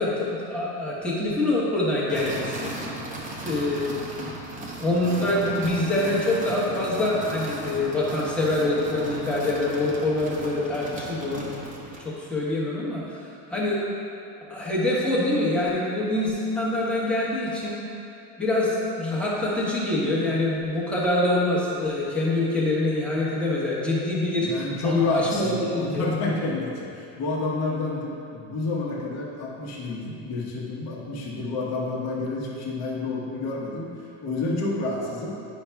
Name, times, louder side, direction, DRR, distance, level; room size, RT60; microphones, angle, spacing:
voice 1, 0.0-2.7 3.4-4.0 4.8-11.5 12.0-13.8 14.5-17.8 18.4-24.5 24.8-26.1, left 2 dB, 5° left, -7 dB, 1.1 m, -25 dB
sound 1, 2.1-12.1, right 2 dB, 20° right, 0.7 m, -36 dB
voice 2, 24.4-35.4, left 2 dB, 40° left, -5 dB, 1.1 m, -29 dB
9.5 x 5.6 x 2.3 m, 2.6 s
supercardioid pair, 145°, 40 cm